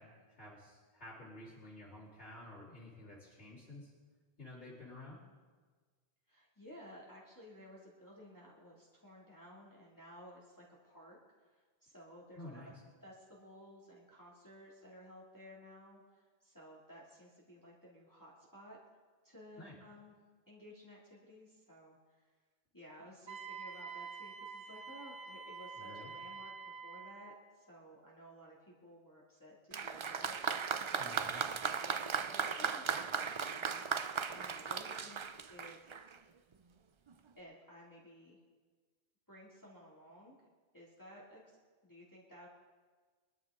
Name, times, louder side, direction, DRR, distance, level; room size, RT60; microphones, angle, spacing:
voice 1, 0.0-3.9 4.4-5.2 12.3-12.7 19.6-19.8 25.8-26.1 31.0-31.5, left 1 dB, 80° left, -9 dB, 3.6 m, -51 dB
voice 2, 6.3-12.7 13.0-18.8 19.2-20.1 20.5-22.3 22.7-30.7 31.0-31.3 31.8-33.1 33.4-33.9 34.3-35.2 35.5-36.0 37.4-38.4 39.3-40.4 40.7-42.5, equal, 15° left, -6 dB, 2.4 m, -56 dB
Wind instrument woodwind instrument, 23.3-27.4, right 5 dB, 85° right, 1.4 m, -47 dB
Applause, 29.7-36.2 37.1-37.2, right 6 dB, 50° right, 0.3 m, -37 dB
23.5 x 12.5 x 3.7 m, 1.4 s
omnidirectional pair, 1.1 m